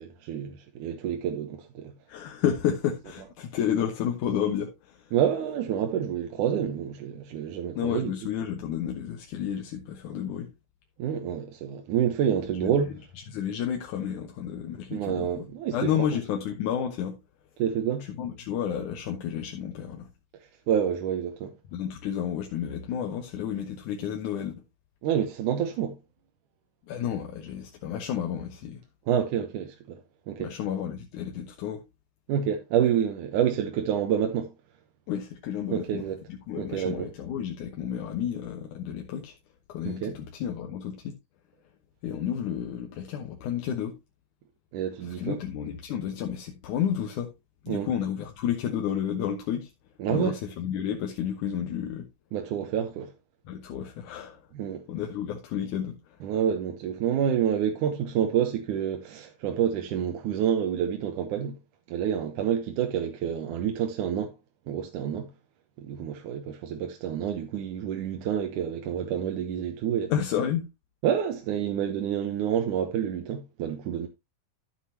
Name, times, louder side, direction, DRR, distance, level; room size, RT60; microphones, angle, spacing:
voice 1, 0.0-1.9 5.1-8.1 11.0-13.0 14.9-16.1 17.6-18.1 20.7-21.5 25.0-26.0 29.1-30.0 30.3-30.5 32.3-34.5 35.7-36.2 36.6-37.1 39.8-40.2 44.7-45.4 47.7-47.9 50.0-50.4 52.3-53.1 54.5-54.8 56.2-61.6 61.9-64.3 64.7-65.3 65.8-70.1 71.0-74.1, right 9 dB, 70° right, 2.3 m, -28 dB
voice 2, 2.1-5.1 7.8-10.5 13.3-15.5 15.7-17.2 18.0-20.1 21.7-24.5 26.9-28.8 30.4-31.8 35.1-36.0 36.3-39.3 39.7-41.2 42.0-44.0 45.1-47.3 47.6-49.7 50.1-52.1 53.5-54.4 54.9-56.2 70.1-70.7, left 9 dB, 70° left, 2.4 m, -31 dB
12.5 x 7.6 x 2.8 m
omnidirectional pair, 4.0 m